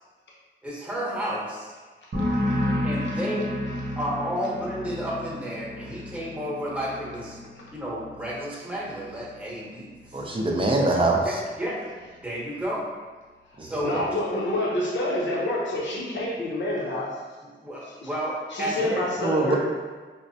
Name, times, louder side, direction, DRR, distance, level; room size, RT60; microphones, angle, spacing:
voice 1, 0.6-1.7 2.8-3.6 3.9-7.4 7.7-10.3 11.2-12.8 13.6-14.0 17.6-19.0, equal, 5° right, -6 dB, 0.9 m, -32 dB
voice 2, 2.0-2.7 3.0-3.2 3.9-4.0 7.5-7.6 13.5-17.2 17.8-18.1 18.5-19.6, left 1 dB, 65° left, -4 dB, 0.7 m, -28 dB
sound 1, 2.1-9.6 9.9-10.4, left 1 dB, 55° right, 0.8 m, -32 dB
voice 3, 10.1-11.3 13.6-13.9 19.2-19.6, right 2 dB, 25° right, 0 dB, 0.5 m, -23 dB
5.1 x 2.1 x 2.7 m, 1.4 s
wide cardioid pair, 135°, 21 cm